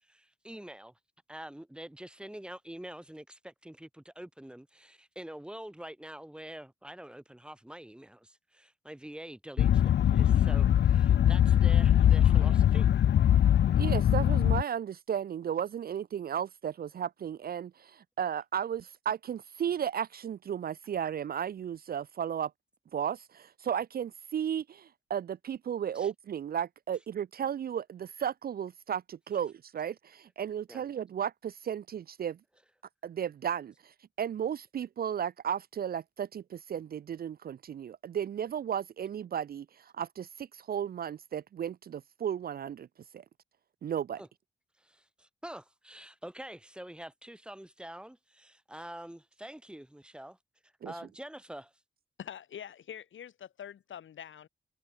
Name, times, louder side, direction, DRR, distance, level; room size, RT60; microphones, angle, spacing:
voice 1, 0.0-0.9 1.3-12.9 25.9-26.1 30.7-30.8 44.2-44.3 44.8-50.4 50.8-51.7, right 1 dB, 5° right, 5.5 m, -46 dB
sound 1, 9.6-14.6, left 10 dB, 65° left, 0.6 m, -22 dB
voice 2, 13.8-22.5 22.9-32.4 33.0-42.9 43.1-43.2 43.8-44.2 50.8-50.9, right 9 dB, 50° right, 0.5 m, -34 dB
voice 3, 52.2-54.5, left 9 dB, 80° left, 4.5 m, -45 dB
wide cardioid pair, 170°, 20 cm